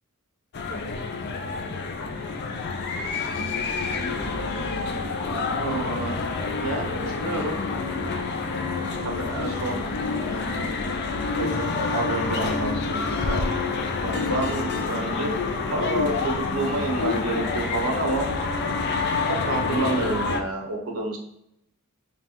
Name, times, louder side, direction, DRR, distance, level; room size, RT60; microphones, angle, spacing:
sound 1, 0.5-20.4, left 4 dB, 50° left, 0.4 m, -28 dB
voice 1, 5.6-6.2 6.6-7.6 9.0-9.8 10.2-10.8 11.4-13.7 14.0-15.3 15.7-18.3 19.3-21.2, right 2 dB, 75° right, 1 dB, 1.0 m, -29 dB
5.2 x 2.3 x 2.9 m, 0.79 s
head